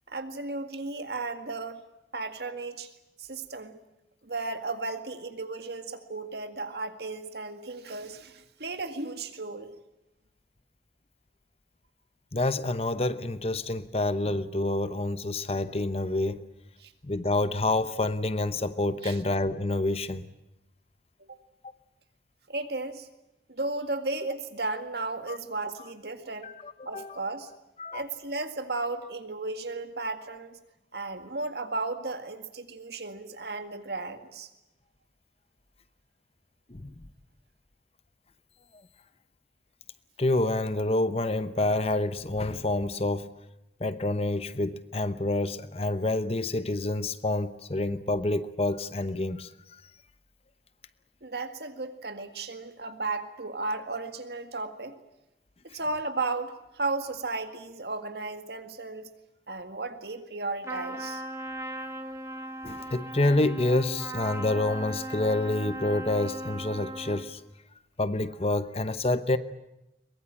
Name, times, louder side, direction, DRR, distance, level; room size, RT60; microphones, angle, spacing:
voice 1, 0.1-1.8 2.1-2.9 3.2-3.8 4.2-9.7 16.8-16.9 19.0-19.2 21.3-21.4 22.5-23.1 23.5-26.5 26.9-27.5 27.9-30.6 30.9-34.5 51.2-55.0 55.6-59.1 59.5-61.2, right 3 dB, 70° right, 2.0 m, -34 dB
voice 2, 12.3-16.4 17.0-20.3 25.3-25.4 26.4-27.2 27.8-28.0 36.7-36.9 40.2-43.3 43.8-49.5 62.6-67.4 68.0-69.4, left 2 dB, 35° left, 0.9 m, -28 dB
Trumpet, 60.6-67.3, right 1 dB, 15° right, 1.6 m, -38 dB
23.0 x 21.5 x 8.9 m
head